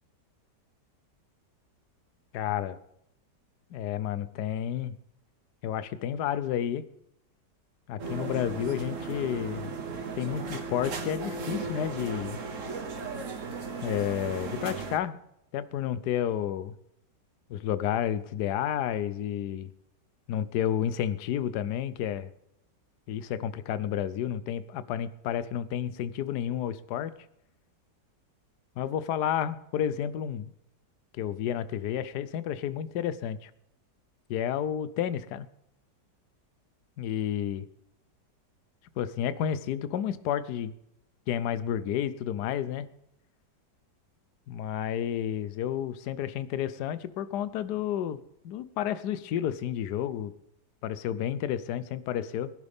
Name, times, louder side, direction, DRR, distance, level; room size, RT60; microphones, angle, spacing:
voice 1, 2.3-2.8 3.7-5.0 5.6-6.8 7.9-9.7 10.2-12.4 13.8-15.2 15.5-16.7 17.5-19.7 20.3-22.3 23.1-27.1 28.8-30.5 31.1-33.5 34.3-35.5 37.0-37.7 39.0-40.7 41.3-42.9 44.5-50.3 50.8-52.5, left 10 dB, 70° left, 15 dB, 1.2 m, -31 dB
sound 1, 8.0-15.0, right 4 dB, 50° right, 1.4 m, -36 dB
21.5 x 11.0 x 3.6 m, 0.78 s
omnidirectional pair, 1.9 m